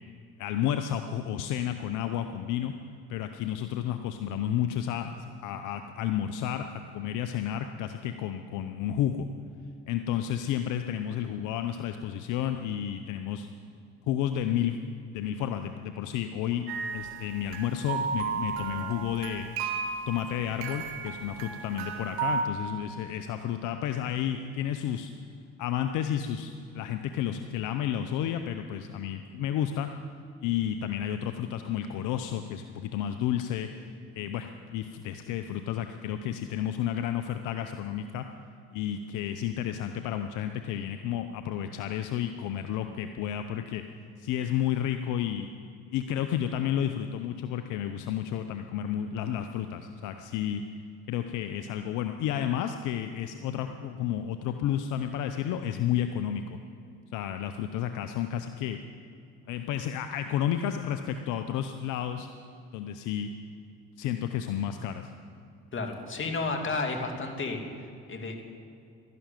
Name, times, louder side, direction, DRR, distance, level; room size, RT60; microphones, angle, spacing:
voice 1, 0.4-2.7 3.1-9.3 9.9-13.5 14.1-14.8 15.1-19.5 20.1-25.1 25.6-29.9 30.4-33.9 34.2-38.3 38.7-43.8 44.2-45.5 45.9-50.7 51.1-56.6 57.1-58.8 59.5-62.3 62.7-63.3 64.0-65.1, left 10 dB, 75° left, 8 dB, 0.7 m, -31 dB
sound 1, 16.7-22.4, right 6 dB, 80° right, 1.7 m, -34 dB
voice 2, 65.7-67.6 68.1-68.4, left 3 dB, 40° left, 3 dB, 2.5 m, -31 dB
12.5 x 11.0 x 9.1 m, 2.5 s
supercardioid pair, 65°, 31 cm